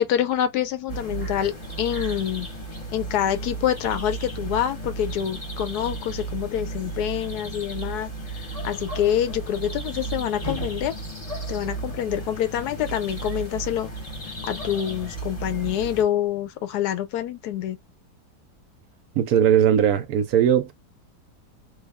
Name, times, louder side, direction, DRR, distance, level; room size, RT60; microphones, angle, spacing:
voice 1, 0.0-2.5 2.9-8.1 8.6-10.9 11.5-13.9 14.4-17.8, left 10 dB, 75° left, 1.1 m, -26 dB
sound 1, 0.9-16.0, right 2 dB, 25° left, 0.9 m, -34 dB
voice 2, 19.2-20.7, right 9 dB, 70° right, 1.0 m, -19 dB
3.3 x 2.3 x 3.4 m
omnidirectional pair, 1.8 m